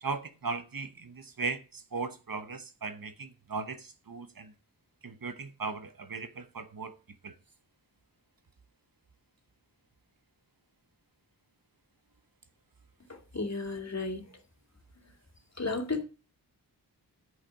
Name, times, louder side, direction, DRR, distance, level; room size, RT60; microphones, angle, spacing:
voice 1, 0.0-4.5 5.0-7.0 7.2-7.3, right 4 dB, 55° right, 0.9 m, -37 dB
voice 2, 13.3-14.2 15.6-16.0, left 3 dB, 40° left, 2.4 m, -33 dB
9.5 x 5.1 x 6.2 m
cardioid pair, 40°, 42 cm